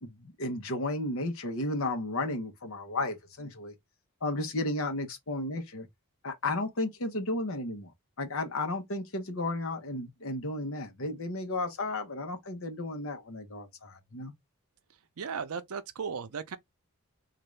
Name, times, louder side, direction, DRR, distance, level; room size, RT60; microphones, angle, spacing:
voice 1, 0.0-3.7 4.2-5.9 6.2-7.9 8.2-14.3, left 2 dB, 65° left, 0.9 m, -33 dB
voice 2, 15.2-16.6, right 6 dB, 80° right, 0.6 m, -36 dB
3.7 x 2.5 x 3.2 m
head